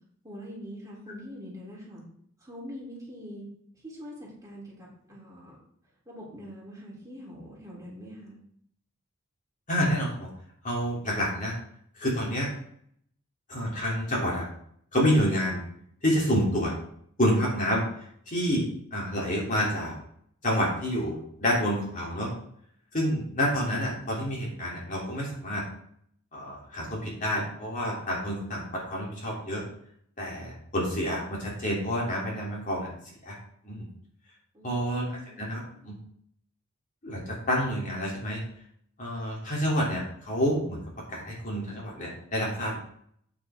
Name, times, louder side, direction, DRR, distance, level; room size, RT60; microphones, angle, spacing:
voice 1, 0.2-2.0 2.4-3.5 3.8-5.6 6.1-8.4 34.5-35.5, equal, 15° right, -5 dB, 3.6 m, -43 dB
voice 2, 9.7-10.3 10.6-11.5 12.0-12.5 13.5-14.5 14.9-15.6 16.0-16.7 17.2-17.8 18.3-19.9 20.4-22.3 22.9-25.6 26.3-28.6 28.9-29.6 30.2-32.9 33.2-33.3 33.6-33.8 34.6-35.0 35.4-35.9 37.0-38.4 39.0-40.8 41.1-42.8, equal, 40° left, -4 dB, 3.3 m, -28 dB
9.2 x 8.5 x 3.7 m, 0.66 s
head